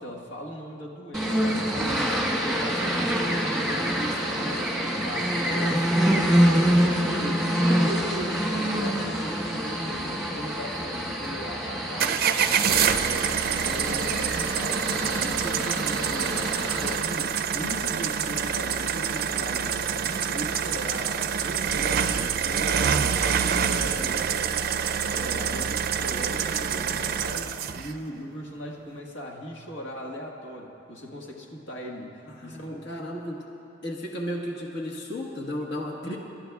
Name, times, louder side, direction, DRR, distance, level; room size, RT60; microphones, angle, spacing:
voice 1, 0.0-6.1 6.7-24.5 25.1-32.9 36.0-36.2, equal, 90° left, -1 dB, 1.5 m, -39 dB
sound 1, 1.1-17.0, equal, 5° left, 1.5 m, -26 dB
sound 2, 12.0-27.9, right 7 dB, 50° right, 0.4 m, -26 dB
voice 2, 32.3-33.4 33.8-36.2, equal, 60° left, -1 dB, 1.3 m, -34 dB
30.0 x 12.5 x 2.3 m, 2.8 s
head